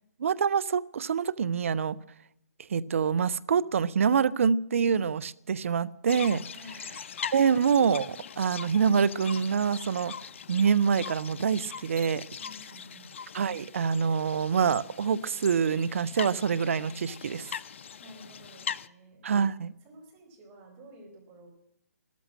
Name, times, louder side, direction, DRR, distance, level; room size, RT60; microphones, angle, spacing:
voice 1, 0.2-2.0 2.7-6.4 7.3-10.1 10.5-12.2 13.3-17.5 19.2-19.7, right 6 dB, 50° right, 17 dB, 0.7 m, -26 dB
sound 1, 6.1-18.9, left 7 dB, 45° left, 0.7 m, -41 dB
voice 2, 6.5-6.8 12.4-13.1 18.0-19.2 19.8-21.5, right 1 dB, 20° right, 1 dB, 4.8 m, -51 dB
14.0 x 13.5 x 7.5 m, 0.78 s
figure-of-eight pair, 135°, 9 cm